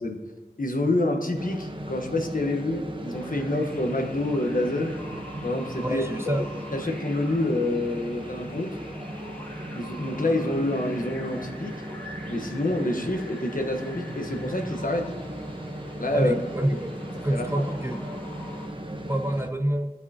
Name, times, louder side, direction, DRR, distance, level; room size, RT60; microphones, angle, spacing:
voice 1, 0.6-5.0 5.4-6.4 6.7-8.8 9.7-11.7 12.3-15.2 16.0-16.8 17.3-17.6, left 1 dB, 55° left, 3 dB, 1.1 m, -27 dB
sound 1, 1.3-19.5, right 1 dB, 30° right, 0.8 m, -37 dB
sound 2, 3.1-18.7, left 1 dB, 10° left, 2.2 m, -45 dB
voice 2, 5.8-6.4 16.1-16.9 17.2-18.0 19.1-19.9, right 1 dB, 15° right, 7 dB, 0.4 m, -27 dB
13.0 x 5.5 x 2.8 m, 1.2 s
wide cardioid pair, 45°, 17 cm